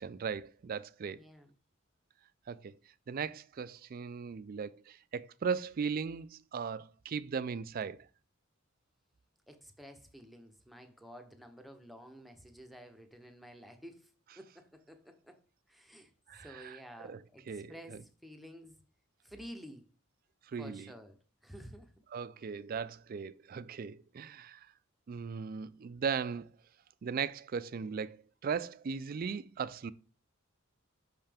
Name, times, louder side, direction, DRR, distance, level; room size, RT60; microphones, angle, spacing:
voice 1, 0.0-1.2 2.5-2.7 3.1-8.1 16.3-18.0 20.5-20.9 22.1-24.7 25.1-26.5 27.0-28.2 28.4-29.9, right 6 dB, 45° right, 0.3 m, -38 dB
voice 2, 1.2-1.5 9.5-15.4 15.7-18.8 19.2-19.9 20.6-21.9, equal, ahead, 0.7 m, -51 dB
5.8 x 5.6 x 3.4 m
head